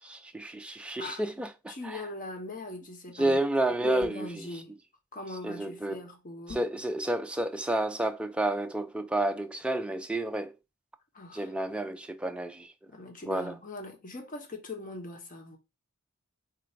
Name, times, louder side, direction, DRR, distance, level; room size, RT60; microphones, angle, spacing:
voice 1, 0.0-2.0 3.1-4.5 5.4-6.0 6.5-10.6 11.3-12.7 13.3-13.5, right 1 dB, 5° right, 0.3 m, -30 dB
voice 2, 1.7-3.4 3.8-4.8 5.1-6.6 11.1-11.5 12.9-15.6, left 2 dB, 40° left, 1.0 m, -41 dB
sound 1, 4.0-4.4 6.5-6.8, left 4 dB, 75° left, 1.9 m, -45 dB
3.8 x 2.5 x 4.4 m
head